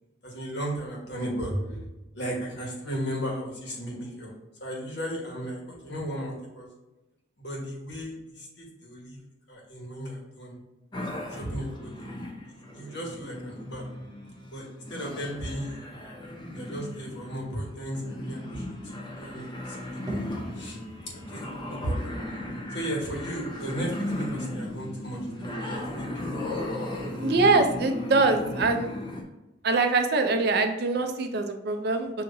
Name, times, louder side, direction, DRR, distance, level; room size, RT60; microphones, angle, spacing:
voice 1, 0.2-1.8 2.1-4.3 4.6-6.7 7.4-9.2 9.5-10.6 11.3-12.2 12.5-13.9 14.5-15.8 16.5-20.2 20.5-20.8 21.1-22.2 22.7-26.4, equal, 65° left, -3 dB, 1.4 m, -35 dB
sound 1, 10.9-29.2, left 1 dB, 25° left, 0.7 m, -36 dB
sound 2, 20.1-25.5, equal, 20° right, 0.8 m, -45 dB
voice 2, 27.2-28.9 29.6-32.2, right 3 dB, 60° right, 6 dB, 0.5 m, -23 dB
6.8 x 2.8 x 2.6 m, 1.0 s
head